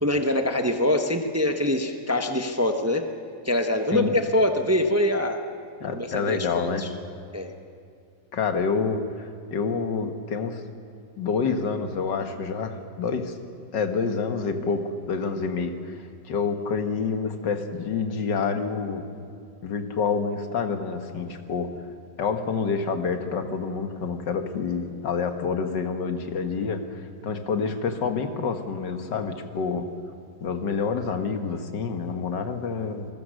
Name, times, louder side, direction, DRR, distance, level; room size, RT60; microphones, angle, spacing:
voice 1, 0.0-3.0 3.4-5.4 5.9-6.4 6.8-6.9 7.3-7.5, left 1 dB, 10° right, 5 dB, 0.9 m, -24 dB
voice 2, 5.8-6.8 8.3-10.6 11.2-13.4 13.7-19.0 19.6-21.7 22.2-29.9 30.4-33.1, left 5 dB, 85° left, 7 dB, 2.1 m, -28 dB
27.5 x 21.5 x 6.5 m, 2.3 s
omnidirectional pair, 1.9 m